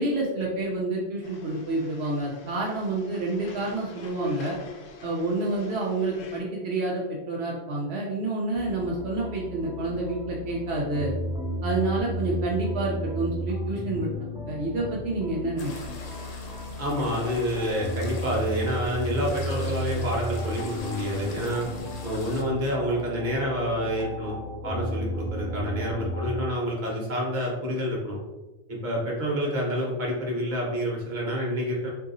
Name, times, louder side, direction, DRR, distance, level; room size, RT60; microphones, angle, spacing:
voice 1, 0.0-4.5 5.0-11.1 11.6-14.1 14.5-15.7, right 2 dB, 75° right, -3 dB, 0.8 m, -28 dB
sound 1, 1.2-6.4, left 4 dB, 75° left, 0.8 m, -46 dB
sound 2, 8.5-26.4, equal, 5° right, 0.7 m, -33 dB
sound 3, 15.6-22.4, left 2 dB, 55° left, 0.5 m, -42 dB
voice 2, 16.8-21.6 22.0-24.4 24.6-28.2 28.7-31.9, equal, 50° right, -3 dB, 1.0 m, -28 dB
3.7 x 2.7 x 2.5 m, 1.1 s
omnidirectional pair, 1.1 m